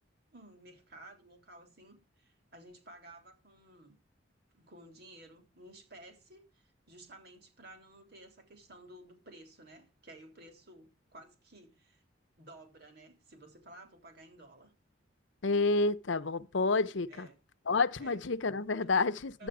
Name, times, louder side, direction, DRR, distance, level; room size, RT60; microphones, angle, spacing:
voice 1, 0.3-4.0 4.5-12.0 12.4-14.7 17.1-17.4 18.0-18.2 19.4-19.5, right 1 dB, 55° right, 3.5 m, -54 dB
voice 2, 15.4-17.3 17.7-19.5, left 3 dB, 75° left, 0.8 m, -29 dB
11.0 x 9.0 x 4.9 m
head